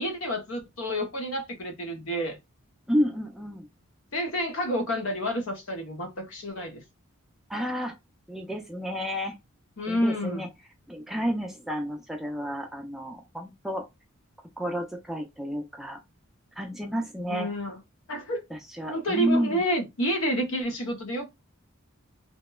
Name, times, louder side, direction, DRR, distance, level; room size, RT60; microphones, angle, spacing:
voice 1, 0.0-2.4 4.1-6.8 9.8-10.5 17.2-17.8 18.1-18.4 18.9-21.3, equal, 70° left, 0.7 m, -29 dB
voice 2, 2.9-3.7 7.5-8.0 8.3-9.4 9.9-10.5 10.9-13.9 14.6-16.0 16.6-17.5 18.5-19.6, equal, ahead, 0.3 m, -30 dB
2.8 x 2.1 x 2.2 m
head